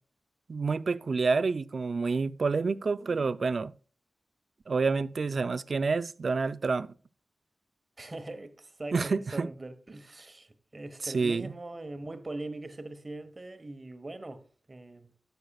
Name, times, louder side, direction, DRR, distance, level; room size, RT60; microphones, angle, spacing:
voice 1, 0.5-3.7 4.7-6.9 8.9-9.5 11.0-11.5, right 4 dB, 65° right, 0.4 m, -28 dB
voice 2, 8.0-15.1, right 2 dB, 40° right, 1.2 m, -41 dB
14.5 x 6.6 x 2.3 m
cardioid pair, 45°, 0 cm